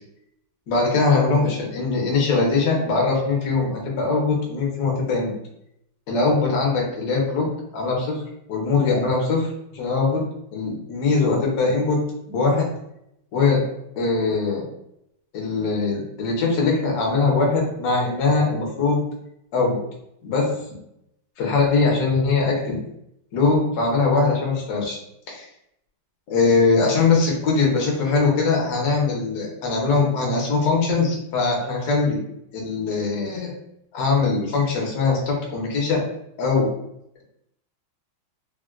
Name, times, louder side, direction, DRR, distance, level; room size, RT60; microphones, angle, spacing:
voice 1, 0.7-5.3 6.1-7.4 7.7-8.2 8.5-10.2 10.5-12.0 12.3-12.7 13.3-13.6 14.0-14.6 15.3-19.0 19.5-19.8 20.2-20.4 21.4-22.8 23.3-25.0 25.3-25.4 26.3-32.2 32.5-33.5 33.9-36.0 36.4-36.7, left 4 dB, 65° left, -2 dB, 1.1 m, -21 dB
3.6 x 2.1 x 2.3 m, 0.78 s
omnidirectional pair, 2.2 m